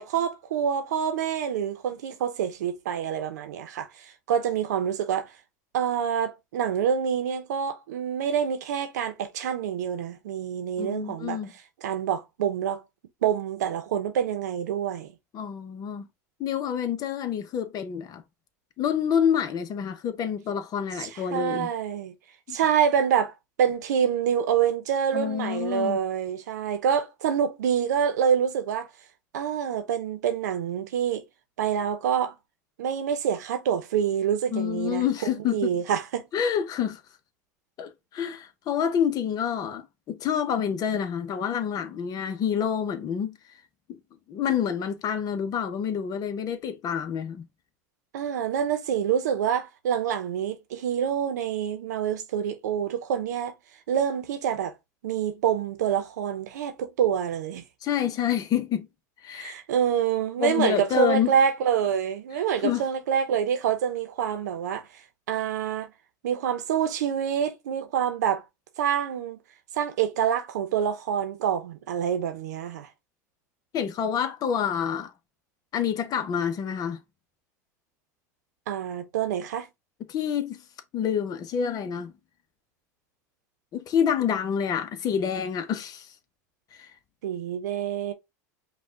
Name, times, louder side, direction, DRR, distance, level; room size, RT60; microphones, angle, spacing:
voice 1, 0.0-5.3 5.7-11.4 11.8-12.8 13.2-15.1 21.0-22.1 22.5-23.3 23.6-28.9 29.3-31.2 31.6-32.3 32.8-35.1 35.5-36.3 48.1-53.5 53.9-54.7 55.0-57.6 59.3-64.8 65.3-65.9 66.2-68.4 68.8-69.4 69.7-72.9 78.7-79.7 87.2-88.1, right 8 dB, 80° right, 0.8 m, -26 dB
voice 2, 10.8-11.5 15.3-16.1 16.4-18.2 18.8-21.7 22.5-22.6 25.1-26.0 34.5-35.7 36.3-37.0 37.8-43.4 44.3-47.4 57.8-58.9 59.2-59.5 60.4-61.4 62.6-62.8 73.7-75.1 75.7-77.0 80.1-80.6 80.9-82.1 83.7-86.1 86.8-86.9, left 8 dB, 45° left, 0.9 m, -27 dB
5.2 x 2.4 x 3.6 m
hypercardioid pair, 85°, 9 cm